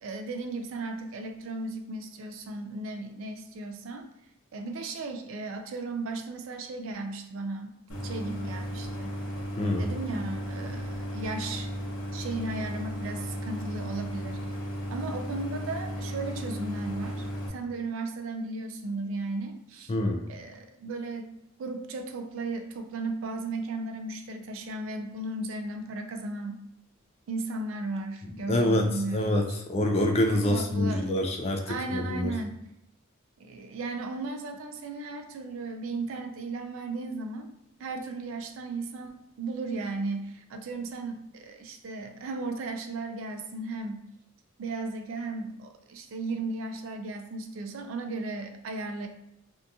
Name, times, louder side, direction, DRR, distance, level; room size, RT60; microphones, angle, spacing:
voice 1, 0.0-4.1 4.5-7.7 8.0-9.2 9.8-11.7 12.1-14.6 14.9-20.0 20.3-21.3 21.6-26.6 27.3-29.6 30.4-31.1 31.7-32.6 33.4-37.5 37.8-44.0 44.6-49.1, right 3 dB, 65° right, 5 dB, 0.3 m, -35 dB
Idling, 7.9-17.5, equal, 70° left, 0.8 m, -35 dB
voice 2, 9.6-9.9 19.9-20.2 28.5-29.4 29.7-32.3, left 1 dB, 30° left, 2 dB, 0.3 m, -26 dB
2.7 x 2.3 x 2.5 m, 0.82 s
head